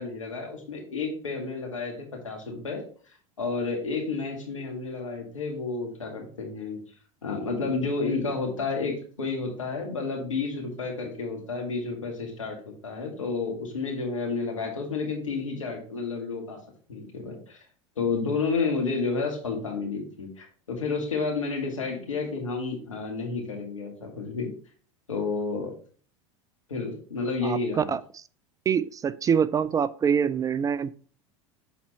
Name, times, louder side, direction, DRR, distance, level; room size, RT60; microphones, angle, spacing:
voice 1, 0.0-2.8 3.4-6.8 7.2-12.6 12.8-16.6 16.9-17.6 18.0-24.5 25.1-25.8 26.7-27.9, left 4 dB, 85° left, 1 dB, 2.1 m, -31 dB
voice 2, 27.4-28.2 28.7-30.9, right 7 dB, 20° right, 16 dB, 0.3 m, -25 dB
7.2 x 4.3 x 4.1 m, 0.43 s
figure-of-eight pair, 80°, 16 cm